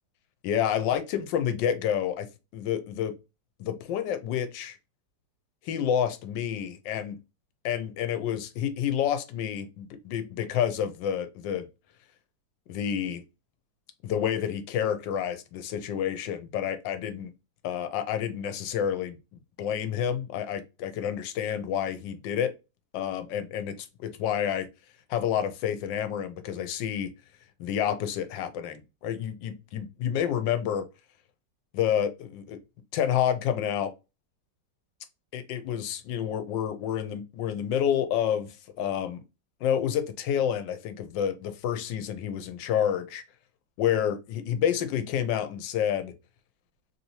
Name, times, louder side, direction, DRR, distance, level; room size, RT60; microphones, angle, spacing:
voice 1, 0.4-2.3 2.5-3.2 3.6-4.8 5.6-7.2 7.6-11.7 12.7-13.2 14.0-17.3 17.6-19.2 19.6-22.5 22.9-23.7 24.0-24.7 25.1-27.1 27.6-30.8 31.7-32.6 32.9-33.9 35.3-39.2 39.6-43.2 43.8-46.1, left 9 dB, 90° left, 1.3 m, -29 dB
3.3 x 2.7 x 2.8 m
omnidirectional pair, 2.0 m